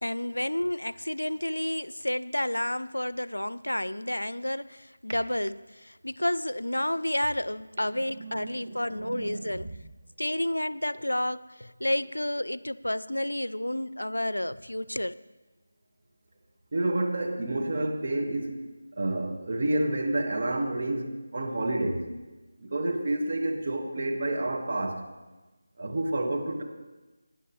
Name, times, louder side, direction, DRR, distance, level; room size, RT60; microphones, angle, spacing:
voice 1, 0.0-9.7 10.2-15.1, left 1 dB, 85° left, 0.4 m, -30 dB
voice 2, 8.1-9.6 16.7-18.6 19.0-22.1 22.6-25.1 25.8-26.6, right 1 dB, 45° right, 1.6 m, -29 dB
18.0 x 10.0 x 3.1 m
figure-of-eight pair, 165°, 0 cm